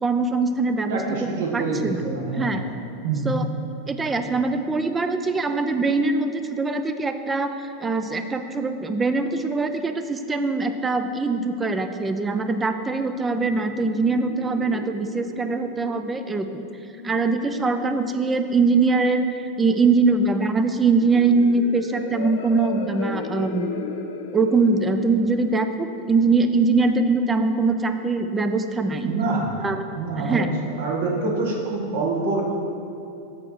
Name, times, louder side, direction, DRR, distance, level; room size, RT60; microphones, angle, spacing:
voice 1, 0.0-2.6 3.2-3.5 3.9-7.5 7.8-16.6 17.0-19.2 19.6-23.7 24.3-29.1 29.6-29.8 30.2-30.5, right 3 dB, 10° right, 8 dB, 0.3 m, -22 dB
voice 2, 0.9-2.5 3.0-3.4 29.0-29.5 29.9-30.5 30.8-32.4, right 3 dB, 65° right, 0 dB, 1.4 m, -26 dB
sound 1, 12.8-26.8, left 5 dB, 75° left, 0.6 m, -37 dB
7.8 x 4.4 x 6.3 m, 2.7 s
supercardioid pair, 170°, 0 cm